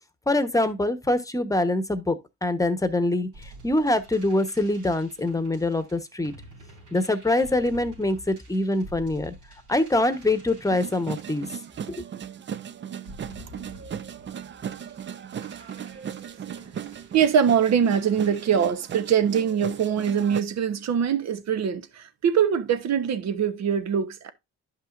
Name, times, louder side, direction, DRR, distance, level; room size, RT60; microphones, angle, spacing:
voice 1, 0.3-6.3 6.9-9.3 9.7-11.5 12.0-12.1, left 2 dB, 10° left, 1.0 m, -24 dB
sound 1, 3.3-12.3 12.9-18.7, right 1 dB, 85° right, 3.5 m, -49 dB
sound 2, 10.7-20.4, right 8 dB, 40° right, 0.5 m, -37 dB
voice 2, 17.1-24.3, right 8 dB, 60° right, 1.0 m, -23 dB
11.0 x 5.6 x 2.5 m
cardioid pair, 90°, 30 cm